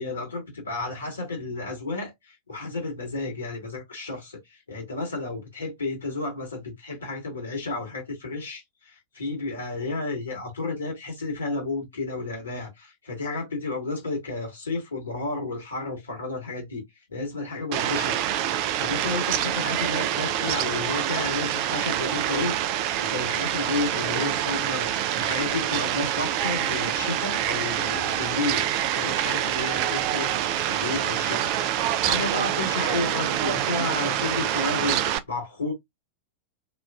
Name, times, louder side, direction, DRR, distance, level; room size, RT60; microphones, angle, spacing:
voice 1, 0.0-16.8 17.1-18.2 18.8-22.6 23.0-28.6 29.0-31.5 31.9-35.0 35.3-35.7, left 3 dB, 70° left, 1.4 m, -32 dB
Fowl, 17.7-35.2, right 11 dB, 45° right, 0.3 m, -26 dB
3.0 x 2.4 x 2.2 m
figure-of-eight pair, 90°, 0 cm